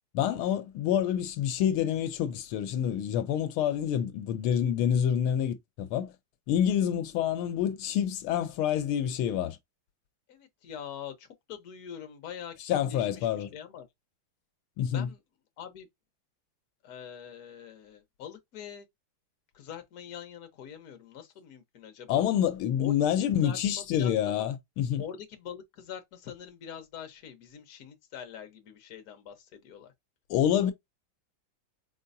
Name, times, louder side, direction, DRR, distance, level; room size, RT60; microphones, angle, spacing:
voice 1, 0.1-6.1 6.5-9.6 12.6-13.5 14.8-15.1 22.1-25.0 30.3-30.7, left 10 dB, 85° left, 1.5 m, -27 dB
voice 2, 10.3-12.5 12.9-13.8 14.8-15.2 15.6-15.9 16.8-18.9 19.5-22.2 22.8-22.9 23.4-24.5 25.0-29.9, left 8 dB, 55° left, 1.4 m, -44 dB
4.5 x 4.1 x 2.6 m
omnidirectional pair, 2.3 m